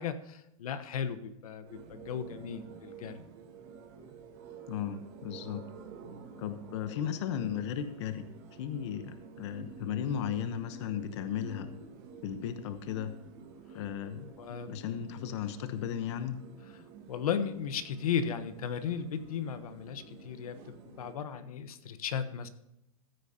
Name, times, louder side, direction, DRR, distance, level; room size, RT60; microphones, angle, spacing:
voice 1, 0.0-3.2 6.0-6.3 13.7-13.8 14.4-14.8 17.1-22.5, left 7 dB, 85° left, 10 dB, 1.2 m, -36 dB
sound 1, 1.6-21.1, right 5 dB, 40° right, 1.7 m, -50 dB
voice 2, 4.7-5.6 6.4-11.7 12.2-13.1 13.7-14.3 14.7-16.4, left 9 dB, 50° left, 9 dB, 1.0 m, -35 dB
15.0 x 9.1 x 2.8 m, 0.88 s
supercardioid pair, 160°, 18 cm